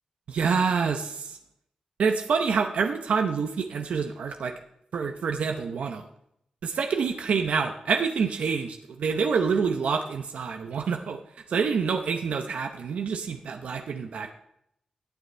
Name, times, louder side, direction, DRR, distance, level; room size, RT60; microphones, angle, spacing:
voice 1, 0.3-1.4 2.0-4.5 4.9-6.1 6.6-11.2 11.5-14.3, right 5 dB, 90° right, 5 dB, 0.8 m, -27 dB
18.0 x 6.7 x 3.4 m, 0.74 s
cardioid pair, 70°, 2 cm